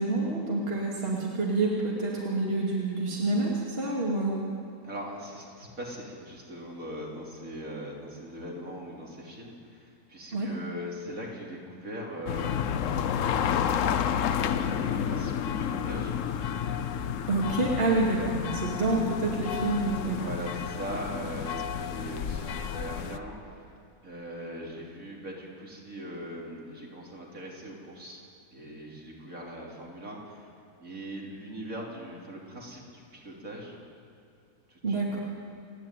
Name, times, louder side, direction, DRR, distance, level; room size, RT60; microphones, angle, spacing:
voice 1, 0.0-4.4 10.3-10.5 17.3-20.2 34.8-35.2, right 2 dB, 35° right, -3 dB, 2.8 m, -28 dB
voice 2, 4.8-13.0 14.1-16.4 16.9-17.1 18.9-19.0 20.1-23.7 24.0-28.2 28.5-30.5 30.8-33.8 34.7-35.2, equal, 55° right, -2 dB, 3.9 m, -40 dB
sound 1, 12.3-23.2, left 8 dB, 60° left, 1.0 m, -30 dB
29.0 x 11.0 x 9.2 m, 2.5 s
omnidirectional pair, 1.7 m